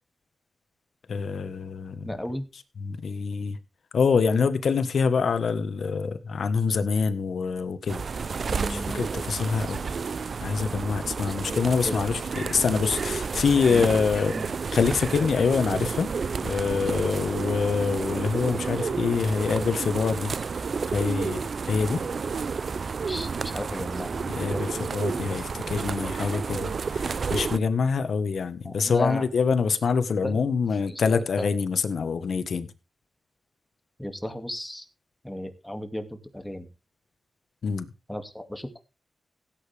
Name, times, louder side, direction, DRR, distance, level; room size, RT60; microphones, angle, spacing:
voice 1, 1.1-2.1 2.8-3.6 3.9-9.8 10.4-14.3 14.7-16.1 16.4-20.6 20.9-21.4 21.7-22.0 24.3-32.7 37.6-37.9, left 5 dB, 75° left, 1.4 m, -25 dB
voice 2, 2.0-2.5 8.5-9.0 11.3-11.6 11.8-12.1 13.7-13.9 14.1-14.5 23.1-24.9 25.3-25.4 28.6-29.2 29.8-29.9 30.2-30.4 30.9-31.5 34.0-34.9 35.2-36.7 38.1-38.8, left 1 dB, 5° left, 2.4 m, -35 dB
sound 1, 7.9-27.6, right 5 dB, 60° right, 0.6 m, -31 dB
16.5 x 9.0 x 3.5 m
cardioid pair, 75°, 0 cm